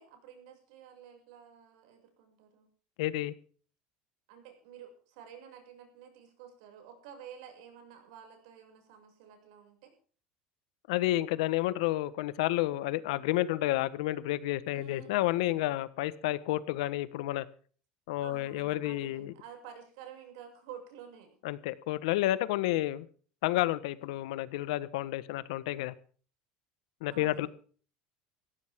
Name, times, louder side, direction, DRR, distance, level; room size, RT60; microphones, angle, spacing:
voice 1, 0.0-2.7 4.3-9.9 14.7-15.2 18.2-21.4 27.1-27.5, right 8 dB, 70° right, 5 dB, 6.6 m, -51 dB
voice 2, 3.0-3.3 10.9-17.4 18.1-19.3 21.4-23.1 23.4-25.9 27.0-27.5, left 16 dB, 90° left, 16 dB, 1.3 m, -30 dB
18.0 x 15.5 x 3.7 m, 0.42 s
cardioid pair, 170°, 3 cm